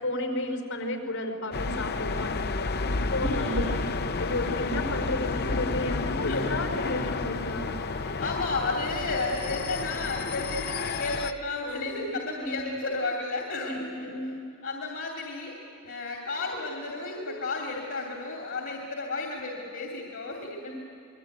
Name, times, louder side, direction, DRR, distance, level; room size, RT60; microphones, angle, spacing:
voice 1, 0.0-2.7 3.1-3.6 4.2-7.7 11.6-12.8 13.5-14.5 20.6-20.7, left 1 dB, 90° left, 4 dB, 5.4 m, -33 dB
sound 1, 1.5-11.3, left 3 dB, 50° left, 0.8 m, -31 dB
voice 2, 3.2-3.9 4.4-4.7 6.2-6.4 7.7-14.2 14.6-15.5 15.8-20.7, left 3 dB, 70° left, 0 dB, 2.8 m, -33 dB
27.5 x 22.0 x 9.3 m, 2.7 s
head